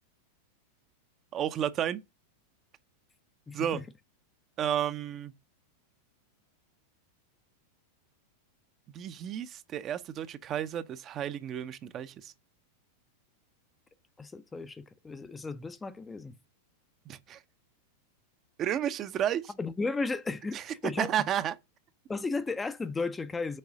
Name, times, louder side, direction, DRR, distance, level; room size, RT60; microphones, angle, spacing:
voice 1, 1.3-2.0 3.5-3.8 4.6-5.3 8.9-12.3 17.1-17.4 18.6-19.5 20.5-21.5, right 10 dB, 30° right, 0.7 m, -32 dB
voice 2, 3.5-3.8 14.2-16.4 19.6-21.1 22.1-23.6, left 3 dB, 10° left, 0.6 m, -34 dB
6.5 x 4.7 x 6.5 m
figure-of-eight pair, 90°, 0 cm